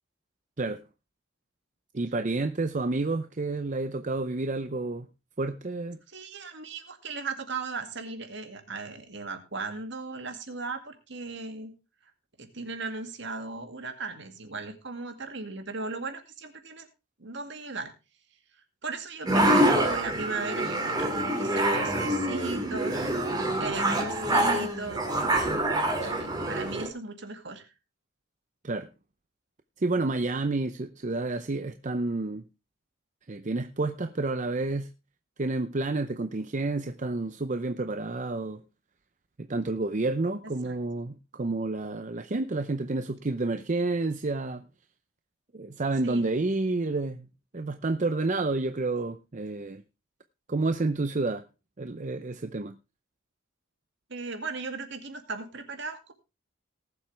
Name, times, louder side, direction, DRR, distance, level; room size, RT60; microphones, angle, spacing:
voice 1, 1.9-5.1 5.4-6.0 28.6-28.9 29.8-32.4 33.3-34.9 35.4-38.6 39.4-44.6 45.5-47.3 47.5-49.8 50.5-51.4 51.8-52.7, right 2 dB, 35° right, 0.6 m, -29 dB
voice 2, 6.1-11.7 12.4-16.9 17.2-17.9 18.8-25.1 26.0-27.7 40.6-40.8 46.0-46.3 54.1-56.1, right 4 dB, 60° right, 2.2 m, -37 dB
sound 1, 19.3-26.9, right 1 dB, 20° right, 2.3 m, -26 dB
19.0 x 7.6 x 3.3 m
head